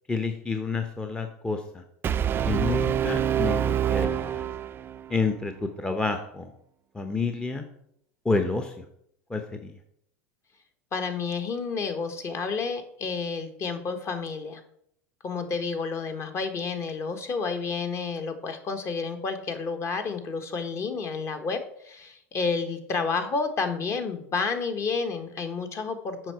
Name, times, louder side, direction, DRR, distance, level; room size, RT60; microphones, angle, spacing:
voice 1, 0.1-1.8 2.4-4.4 5.1-6.5 6.9-7.6 8.2-8.7 9.3-9.7, left 4 dB, 10° left, 6 dB, 0.7 m, -29 dB
Brass instrument, 2.0-5.1, right 9 dB, 30° right, 0.4 m, -26 dB
voice 2, 10.9-14.6 15.2-26.3, left 4 dB, 35° left, 7 dB, 1.2 m, -30 dB
7.6 x 5.5 x 4.6 m, 0.71 s
hypercardioid pair, 100°, 8 cm